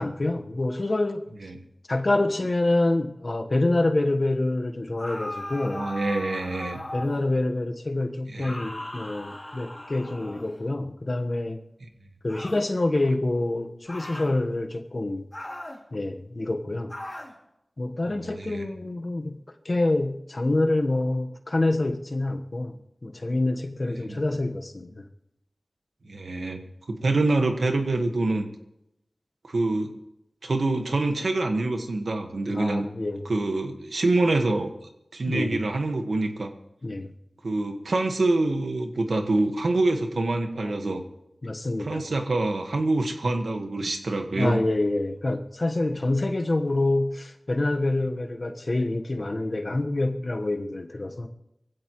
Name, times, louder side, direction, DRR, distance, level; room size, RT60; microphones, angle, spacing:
voice 1, 0.0-1.2 1.9-5.9 6.9-11.6 12.2-15.3 15.9-16.9 17.8-19.4 19.6-22.7 23.0-25.0 32.5-33.3 35.3-35.6 36.8-37.1 40.6-40.7 41.4-42.0 44.4-51.3, left 2 dB, 50° left, 5 dB, 1.2 m, -26 dB
sound 1, 5.0-7.3 8.4-10.7 12.3-12.7 13.9-14.3 15.3-15.8 16.9-17.4, left 1 dB, 25° left, 2.5 m, -38 dB
voice 2, 5.6-6.8 8.3-8.6 18.0-18.7 24.1-24.2 26.1-28.4 29.5-29.9 30.4-32.9 33.2-34.7 35.1-36.5 37.4-41.0 41.8-44.6, right 2 dB, 85° right, 5 dB, 1.5 m, -26 dB
22.5 x 15.5 x 3.1 m, 0.87 s
wide cardioid pair, 55°, 0 cm